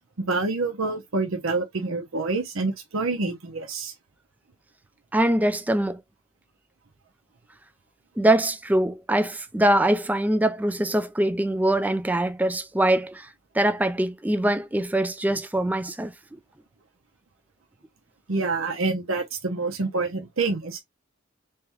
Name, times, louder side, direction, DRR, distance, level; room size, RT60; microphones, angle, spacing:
voice 1, 0.2-3.9 18.3-20.8, right 3 dB, 90° right, 0.8 m, -27 dB
voice 2, 5.1-6.0 8.2-16.1, right 1 dB, 10° right, 0.3 m, -23 dB
3.4 x 3.3 x 3.0 m
head